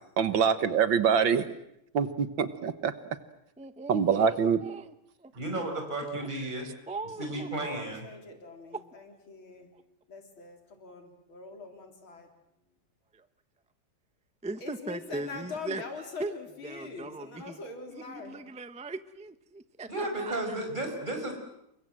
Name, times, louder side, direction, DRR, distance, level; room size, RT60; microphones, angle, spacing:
voice 1, 0.2-1.4 1.9-2.9 3.9-4.6, right 7 dB, 70° right, 12 dB, 2.0 m, -24 dB
voice 2, 3.6-5.3 6.1-6.3 6.9-7.9 8.7-8.8 13.1-13.2 14.4-15.8 16.2-16.3 16.6-17.6 17.9-20.6, right 3 dB, 5° right, 11 dB, 0.6 m, -39 dB
voice 3, 5.3-6.7 7.2-8.0 19.9-21.3, right 1 dB, 20° right, 3 dB, 5.7 m, -33 dB
voice 4, 7.6-12.3 14.6-18.4, left 4 dB, 90° left, 4 dB, 4.5 m, -43 dB
29.5 x 23.0 x 7.8 m, 0.82 s
omnidirectional pair, 2.2 m